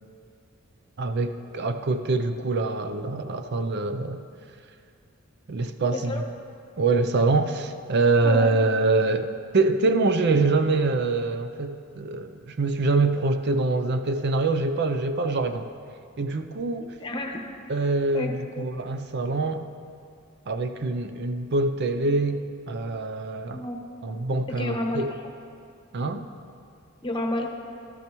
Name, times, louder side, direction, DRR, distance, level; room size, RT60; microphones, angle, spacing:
voice 1, 1.0-4.2 5.5-6.2 6.8-15.7 16.2-17.0 17.7-19.7 20.5-23.7 24.0-25.1 25.9-26.3, right 3 dB, 50° right, 8 dB, 0.5 m, -25 dB
voice 2, 5.9-6.2 8.2-8.7 16.8-17.4 18.1-18.3 18.6-18.7 23.5-23.8 24.5-25.2 27.0-27.5, left 1 dB, 25° left, 1 dB, 1.0 m, -30 dB
14.0 x 13.0 x 3.0 m, 2.4 s
head